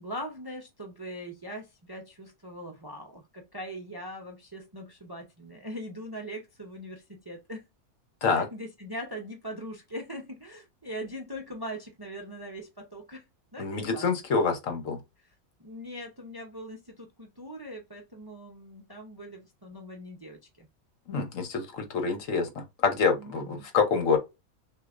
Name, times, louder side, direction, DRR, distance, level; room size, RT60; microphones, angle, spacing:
voice 1, 0.0-7.6 8.2-13.2 13.5-14.4 15.6-20.7 23.2-23.7, equal, 25° right, 0.6 m, -41 dB
voice 2, 13.6-15.0 21.1-24.2, left 5 dB, 65° left, 1.3 m, -27 dB
6.2 x 2.8 x 2.5 m
omnidirectional pair, 1.5 m